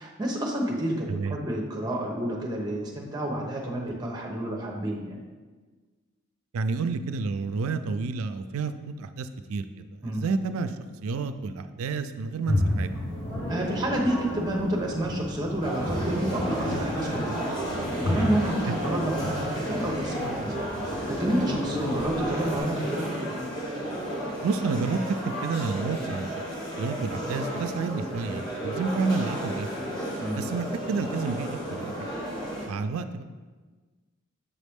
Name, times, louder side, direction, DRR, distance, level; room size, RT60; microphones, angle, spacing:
voice 1, 0.0-5.2 10.0-10.2 13.5-17.6 17.9-20.7 21.1-23.1 30.2-30.4, right 1 dB, 20° right, 0 dB, 0.8 m, -29 dB
voice 2, 6.5-8.7 9.0-10.8 11.0-12.9 24.4-26.3 26.8-29.7 30.4-31.9 32.7-33.2, right 4 dB, 90° right, 10 dB, 0.4 m, -30 dB
sound 1, 12.5-22.6, left 1 dB, 65° left, 1.0 m, -32 dB
sound 2, 15.6-32.7, right 1 dB, 20° left, 1.0 m, -33 dB
7.0 x 4.1 x 3.5 m, 1.4 s
head